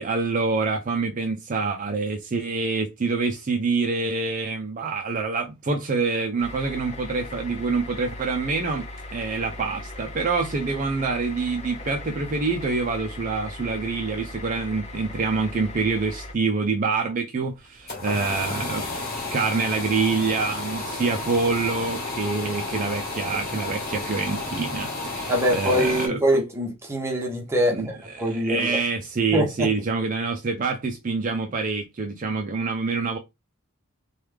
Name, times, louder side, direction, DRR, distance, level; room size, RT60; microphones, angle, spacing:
voice 1, 0.0-18.9 19.3-26.2 27.7-27.9 28.1-33.2, right 4 dB, 35° right, 0.4 m, -26 dB
sound 1, 6.4-16.3, left 2 dB, 30° left, 0.7 m, -38 dB
sound 2, 17.5-26.1, left 2 dB, 45° left, 1.3 m, -32 dB
voice 2, 25.3-28.8 29.3-29.7, equal, 10° right, 0.8 m, -24 dB
3.2 x 2.3 x 3.3 m
head